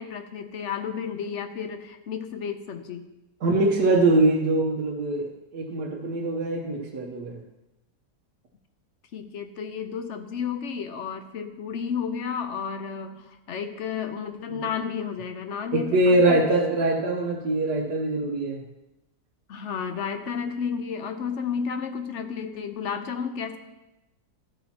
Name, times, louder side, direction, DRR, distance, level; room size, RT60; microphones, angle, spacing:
voice 1, 0.0-3.1 9.1-16.5 19.5-23.6, left 6 dB, 60° left, 7 dB, 0.8 m, -32 dB
voice 2, 3.4-7.4 15.7-18.6, right 2 dB, 75° right, -3 dB, 1.6 m, -23 dB
13.5 x 8.5 x 2.9 m, 0.96 s
omnidirectional pair, 1.7 m